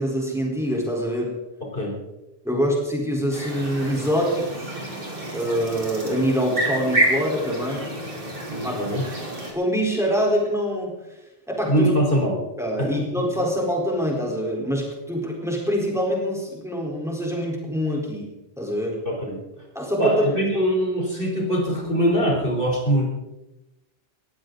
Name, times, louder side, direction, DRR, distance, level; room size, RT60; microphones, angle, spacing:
voice 1, 0.0-1.3 2.4-4.7 5.3-7.9 8.6-9.0 9.5-10.9 11.5-11.9 12.6-18.3 18.6-19.0 19.7-20.3, equal, 5° right, -2 dB, 4.3 m, -25 dB
voice 2, 1.6-1.9 8.5-9.0 11.7-12.3 12.8-13.1 19.1-19.7 20.0-23.1, right 1 dB, 60° left, -1 dB, 4.1 m, -23 dB
sound 1, 3.3-9.5, right 1 dB, 60° right, 3.7 m, -28 dB
20.5 x 15.0 x 4.0 m, 0.97 s
omnidirectional pair, 1.1 m